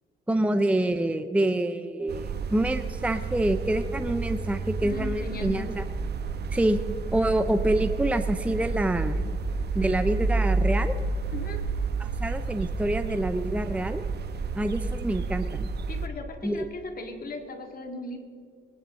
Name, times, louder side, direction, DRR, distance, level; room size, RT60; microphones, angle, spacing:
voice 1, 0.3-5.8 6.5-6.8 7.1-9.2 9.7-10.9 12.0-14.0 14.6-15.7 16.4-16.6, right 1 dB, 5° right, 9 dB, 0.6 m, -26 dB
sound 1, 2.1-16.1, right 4 dB, 55° right, 1.0 m, -30 dB
voice 2, 4.8-5.7 11.3-11.6 15.9-18.2, left 3 dB, 45° left, 4 dB, 2.4 m, -37 dB
21.5 x 11.0 x 3.8 m, 2.2 s
cardioid pair, 90°, 20 cm